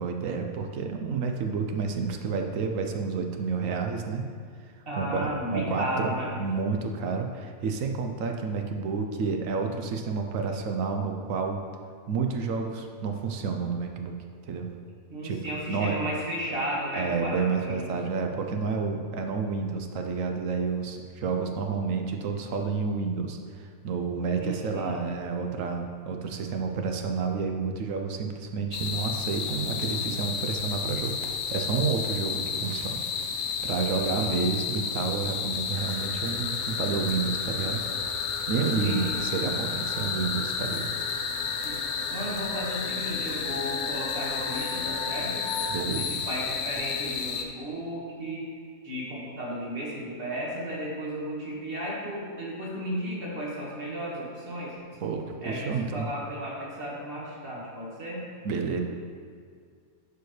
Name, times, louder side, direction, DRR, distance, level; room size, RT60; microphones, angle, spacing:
voice 1, 0.0-4.2 4.9-11.6 12.1-14.2 14.4-14.7 15.2-16.1 16.9-33.0 33.6-37.8 38.5-40.9 45.7-46.2 55.0-56.1 58.4-58.8, right 5 dB, 75° right, 4 dB, 1.0 m, -30 dB
voice 2, 4.9-6.3 15.1-18.0 24.4-25.0 33.9-34.4 38.7-39.2 41.6-41.8 42.1-45.5 46.0-48.5 48.8-54.8 55.4-58.3, equal, 40° right, -5 dB, 1.9 m, -34 dB
sound 1, 28.7-47.4, left 7 dB, 75° left, 1.0 m, -32 dB
sound 2, 35.7-45.8, left 2 dB, 40° left, 1.0 m, -38 dB
11.0 x 4.6 x 3.2 m, 2.1 s
omnidirectional pair, 1.4 m